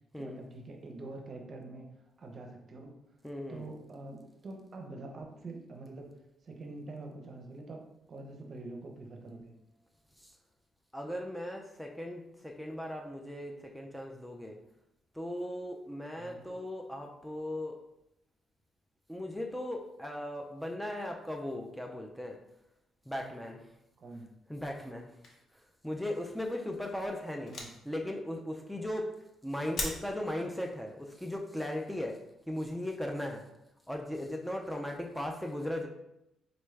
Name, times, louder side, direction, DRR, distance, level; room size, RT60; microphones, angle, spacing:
voice 1, 0.2-1.9 2.2-3.0 3.5-6.2 6.4-7.8 8.1-9.5 16.1-16.4 24.0-24.3 27.5-27.7, right 2 dB, 45° right, 2 dB, 0.6 m, -45 dB
voice 2, 3.2-3.7 10.2-10.3 10.9-14.6 15.1-17.8 19.1-22.4 23.1-23.6 24.5-25.1 25.8-27.5 27.8-29.1 29.4-32.2 32.5-33.5 33.9-35.9, left 1 dB, 5° left, 2 dB, 0.4 m, -37 dB
sound 1, 22.9-23.0 23.3-23.4 24.8-25.7 26.2-26.4 26.7-26.8 27.3-28.0 28.7-28.8 29.1-29.4 29.7-30.0, left 2 dB, 55° left, 0.8 m, -39 dB
4.0 x 2.2 x 3.2 m, 0.85 s
cardioid pair, 90°, 0 cm